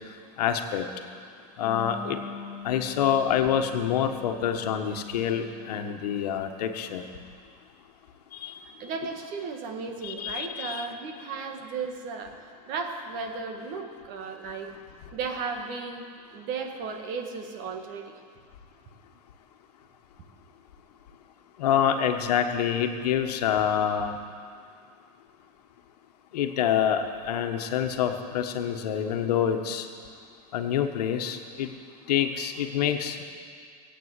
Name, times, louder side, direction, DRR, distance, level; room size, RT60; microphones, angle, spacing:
voice 1, 0.4-0.9 1.6-2.2 2.6-7.0 8.3-8.5 10.0-10.9 21.6-24.2 26.3-29.9 30.5-31.7 32.1-33.2, left 9 dB, 75° left, 6 dB, 1.4 m, -26 dB
Wind instrument woodwind instrument, 1.6-6.6, left 6 dB, 25° left, 1.6 m, -44 dB
voice 2, 8.8-14.7 15.1-16.1 16.3-18.2, right 5 dB, 45° right, 4 dB, 1.9 m, -35 dB
19.0 x 8.7 x 8.3 m, 2.2 s
supercardioid pair, 150°, 20 cm